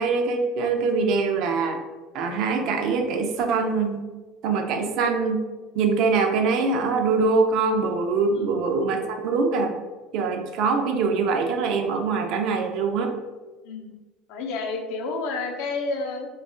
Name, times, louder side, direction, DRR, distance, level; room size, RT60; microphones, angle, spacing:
voice 1, 0.0-1.8 2.1-4.0 4.4-5.4 5.7-9.7 10.1-13.1, right 4 dB, 60° right, 5 dB, 0.4 m, -23 dB
voice 2, 14.3-16.3, left 3 dB, 70° left, 3 dB, 0.4 m, -30 dB
2.3 x 2.0 x 3.6 m, 1.2 s
hypercardioid pair, 75°, 0 cm